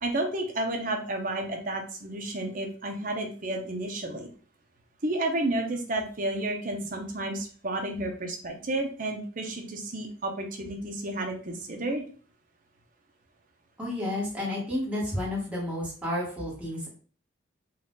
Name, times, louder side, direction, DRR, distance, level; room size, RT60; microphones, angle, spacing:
voice 1, 0.0-4.3 5.0-12.0, right 1 dB, 40° right, 2 dB, 0.8 m, -31 dB
voice 2, 13.8-16.9, left 1 dB, 5° right, -6 dB, 1.4 m, -31 dB
4.1 x 2.5 x 3.8 m, 0.41 s
head